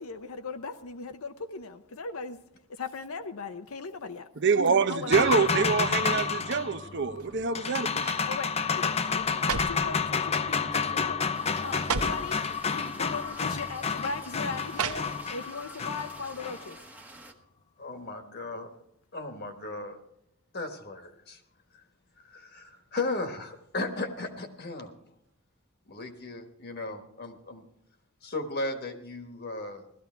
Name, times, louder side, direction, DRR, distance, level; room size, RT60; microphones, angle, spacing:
voice 1, 0.0-2.4 2.7-4.3 4.9-5.9 8.3-12.4 12.7-16.8, left 4 dB, 75° left, 8 dB, 0.8 m, -39 dB
voice 2, 4.4-8.1, right 5 dB, 55° right, 12 dB, 0.7 m, -25 dB
sound 1, 5.1-16.7, left 5 dB, 30° left, 0.6 m, -30 dB
sound 2, 7.1-7.5 8.0-8.3 9.1-9.9 10.7-11.0 11.3-11.4 11.7-12.3 13.2-13.4 14.7-15.5 15.9-16.0, right 5 dB, 90° right, 1.0 m, -34 dB
sound 3, 11.3-17.3, right 1 dB, 5° right, 1.1 m, -49 dB
voice 3, 17.8-18.7 19.1-20.0 20.5-21.4 21.7-21.8 22.2-24.9 25.9-27.6 28.2-29.8, left 2 dB, 50° left, 6 dB, 1.4 m, -36 dB
16.5 x 13.0 x 4.5 m, 0.75 s
head